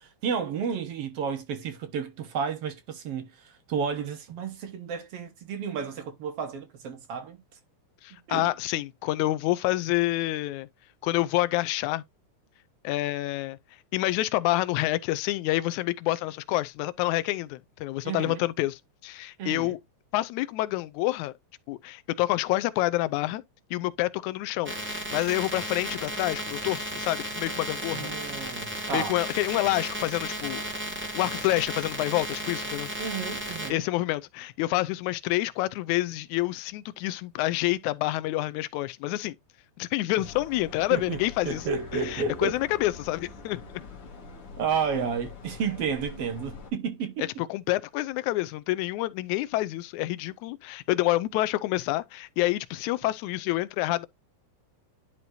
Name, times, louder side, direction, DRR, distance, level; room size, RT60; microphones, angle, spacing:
voice 1, 0.0-7.4 8.1-8.5 18.0-18.4 19.4-19.8 27.9-29.2 33.0-33.8 40.9-42.6 44.6-47.3, right 6 dB, 60° right, 1.9 m, -32 dB
voice 2, 8.0-10.7 11.0-12.0 12.8-13.6 13.9-19.8 20.1-21.3 21.7-23.4 23.7-28.1 28.9-30.6 31.1-32.9 33.7-39.4 39.8-41.6 42.0-43.6 47.2-54.1, left 17 dB, 90° left, 2.0 m, -28 dB
sound 1, 24.6-33.7, right 1 dB, 5° right, 1.0 m, -34 dB
sound 2, 40.2-46.7, left 4 dB, 50° left, 2.6 m, -45 dB
11.0 x 4.2 x 2.7 m
omnidirectional pair, 3.3 m